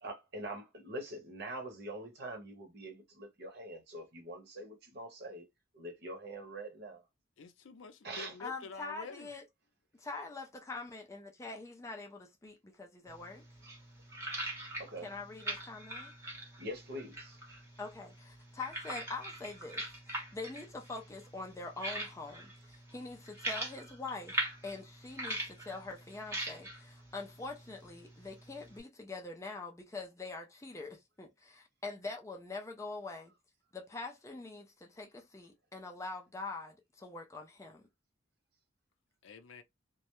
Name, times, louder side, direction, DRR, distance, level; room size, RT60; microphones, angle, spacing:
voice 1, 0.0-5.5 5.7-7.0 8.0-8.3 14.8-15.1 16.6-17.4, right 1 dB, 55° right, 0.8 m, -44 dB
voice 2, 7.4-9.3 39.2-39.6, left 4 dB, 75° left, 0.5 m, -48 dB
voice 3, 8.4-9.4 10.0-13.4 15.0-16.1 17.8-33.3 33.7-37.9, left 3 dB, 15° left, 0.3 m, -44 dB
sound 1, 13.1-28.8, right 1 dB, 15° right, 0.7 m, -43 dB
2.2 x 2.0 x 2.9 m
head